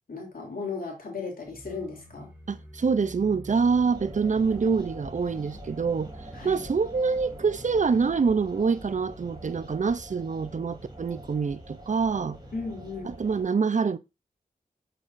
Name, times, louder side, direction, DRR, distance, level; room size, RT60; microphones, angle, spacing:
voice 1, 0.1-2.3 6.3-6.7 12.5-13.1, left 4 dB, 70° left, 2.9 m, -36 dB
sound 1, 1.4-9.1, equal, 10° right, 2.8 m, -49 dB
voice 2, 2.5-6.1 6.4-12.4 13.0-14.0, right 5 dB, 55° right, 0.5 m, -25 dB
sound 2, 3.5-13.5, right 1 dB, 30° right, 3.6 m, -44 dB
7.0 x 5.8 x 2.6 m
cardioid pair, 50°, 15 cm